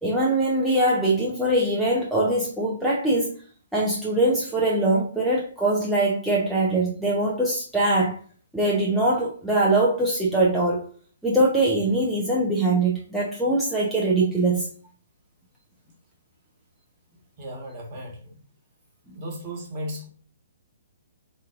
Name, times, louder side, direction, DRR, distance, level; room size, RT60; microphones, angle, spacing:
voice 1, 0.0-3.3 3.7-8.2 8.5-10.8 11.2-14.7, right 2 dB, ahead, 0.6 m, -22 dB
voice 2, 17.4-18.4 19.1-20.1, equal, 30° right, 1.3 m, -35 dB
4.0 x 3.8 x 2.4 m
figure-of-eight pair, 125°, 0 cm